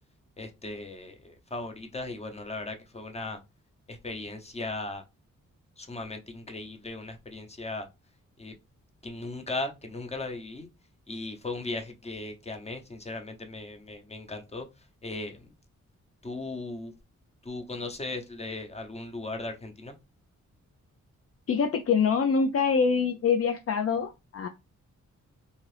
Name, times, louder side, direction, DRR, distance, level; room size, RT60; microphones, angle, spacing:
voice 1, 0.4-3.4 3.9-5.0 5.8-7.9 8.4-8.5 9.0-10.7 11.1-14.7 15.0-15.4 16.2-16.9 17.4-19.9, left 2 dB, 20° left, 0.8 m, -37 dB
voice 2, 21.5-24.5, left 5 dB, 50° left, 0.4 m, -25 dB
2.8 x 2.4 x 3.2 m
cardioid pair, 70°, 31 cm